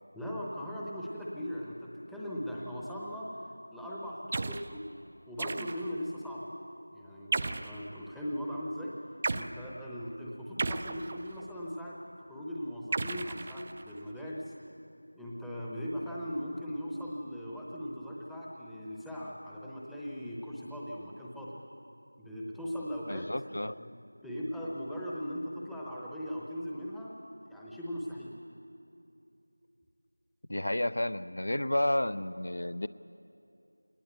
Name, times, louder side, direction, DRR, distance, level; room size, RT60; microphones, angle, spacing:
voice 1, 0.1-3.3 3.7-4.8 5.3-6.5 6.9-8.9 9.3-14.5 15.1-21.5 22.2-23.3 23.8-23.9 24.2-27.1 27.5-28.3, equal, ahead, -7 dB, 0.8 m, -39 dB
sound 1, 4.3-4.7 5.4-6.0 7.3-7.8 9.2-9.5 10.6-11.5 12.9-14.0, right 3 dB, 25° right, 0.4 m, -34 dB
voice 2, 23.1-23.8 30.5-32.9, left 1 dB, 60° left, 16 dB, 0.5 m, -31 dB
21.0 x 19.0 x 8.0 m, 2.7 s
figure-of-eight pair, 175°, 0 cm